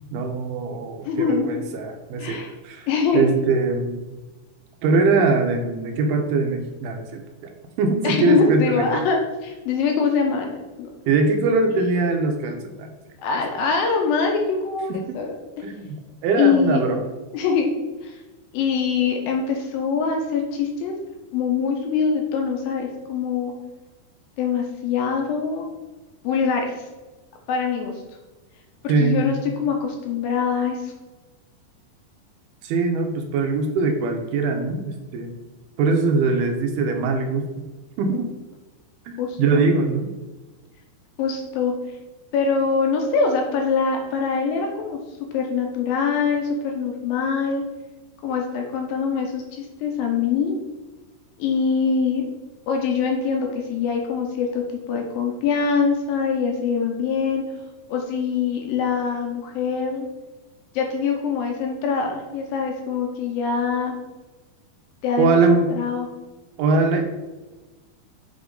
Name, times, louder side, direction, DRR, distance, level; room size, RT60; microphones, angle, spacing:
voice 1, 0.1-2.4 2.6-2.9 3.1-4.0 4.8-7.5 7.8-9.0 11.1-12.9 14.9-15.2 15.6-16.0 16.2-17.0 28.9-29.3 32.6-35.4 35.8-37.5 38.0-38.3 39.1-40.1 65.2-65.7 66.6-67.0, right 4 dB, 80° right, 4 dB, 2.6 m, -22 dB
voice 2, 1.0-1.5 2.2-2.5 2.9-3.4 8.0-10.9 13.2-15.3 16.4-16.8 17.3-17.7 18.0-18.2 18.5-20.9 21.3-23.5 24.4-25.6 26.2-26.7 27.5-27.9 29.0-30.9 38.1-38.2 39.2-39.6 41.2-41.7 42.3-45.0 45.3-47.6 48.2-50.6 51.4-52.2 52.7-57.4 57.9-60.1 60.7-63.9 65.0-65.4 65.8-66.1, left 5 dB, 75° left, 2 dB, 2.3 m, -23 dB
7.2 x 3.6 x 3.8 m, 1.2 s
omnidirectional pair, 4.5 m